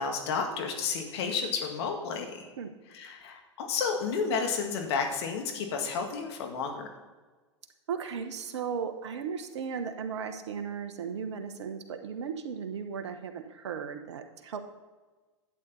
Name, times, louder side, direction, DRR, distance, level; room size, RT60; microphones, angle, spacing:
voice 1, 0.0-2.5 2.9-6.9, left 5 dB, 60° left, 4 dB, 2.1 m, -31 dB
voice 2, 7.9-14.6, right 6 dB, 70° right, 8 dB, 1.3 m, -36 dB
11.5 x 8.4 x 4.0 m, 1.3 s
hypercardioid pair, 100°, 15 cm